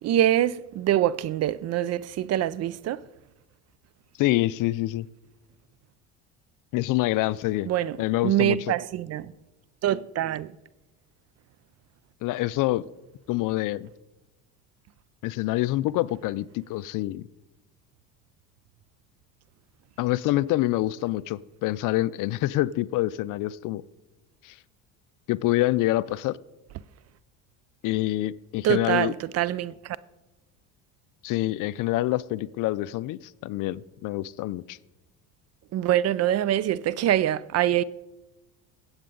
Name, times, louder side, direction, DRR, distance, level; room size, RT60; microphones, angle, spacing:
voice 1, 0.0-3.0 7.7-8.0 8.2-9.3 9.8-10.5 28.6-30.0 35.7-37.8, right 12 dB, 40° right, 0.4 m, -24 dB
voice 2, 4.2-5.1 6.7-7.7 8.0-8.7 12.2-12.9 13.3-13.9 15.2-17.2 20.0-23.8 24.4-24.6 25.3-26.4 27.8-29.1 31.2-34.8, left 17 dB, 55° left, 0.5 m, -26 dB
17.5 x 8.0 x 3.8 m
supercardioid pair, 95°, 39 cm